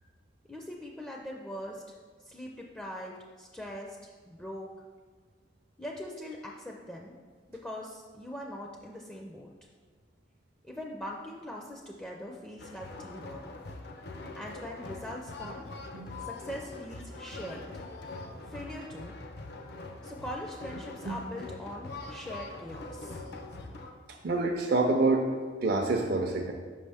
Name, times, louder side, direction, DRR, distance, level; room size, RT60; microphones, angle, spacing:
voice 1, 0.5-1.9 2.2-4.7 5.8-7.2 7.5-9.5 10.6-13.4 14.4-15.7 16.2-17.7 18.4-19.2 20.0-23.2, left 1 dB, 5° left, -1 dB, 0.4 m, -41 dB
sound 1, 12.6-23.9, left 3 dB, 60° left, 0.6 m, -43 dB
voice 2, 24.2-25.3 25.6-26.5, right 3 dB, 55° right, 0 dB, 0.5 m, -27 dB
5.6 x 5.4 x 3.4 m, 1.5 s
head